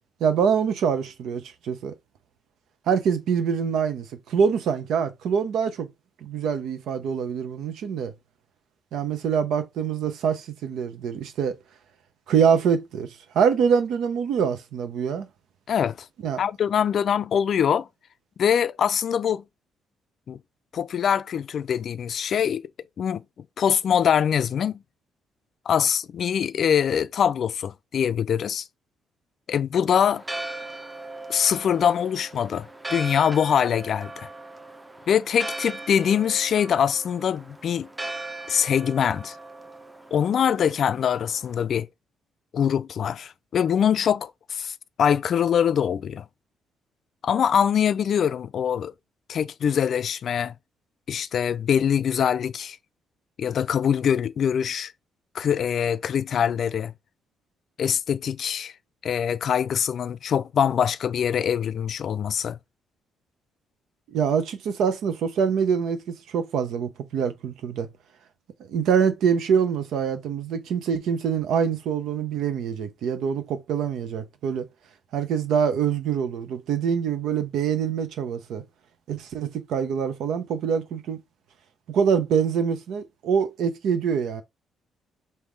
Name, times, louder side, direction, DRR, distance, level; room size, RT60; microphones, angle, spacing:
voice 1, 0.2-1.9 2.9-5.9 6.2-8.1 8.9-11.6 12.3-15.3 16.2-16.4 64.1-67.9 68.7-74.7 75.1-78.6 79.1-81.2 81.9-84.4, right 7 dB, 80° right, 0.8 m, -25 dB
voice 2, 16.4-17.9 18.4-19.4 20.3-20.4 20.7-22.6 23.0-23.2 23.6-24.8 25.7-28.7 29.5-30.2 31.3-34.3 35.1-37.9 38.5-39.4 40.1-41.9 42.5-46.2 47.2-48.9 49.3-50.5 51.1-52.8 53.4-54.9 55.3-56.9 57.8-58.7 59.0-62.6, left 8 dB, 60° left, 0.4 m, -23 dB
Church bell, 30.1-41.6, right 2 dB, 10° right, 0.7 m, -39 dB
3.6 x 2.7 x 4.6 m
cardioid pair, 90°, 0 cm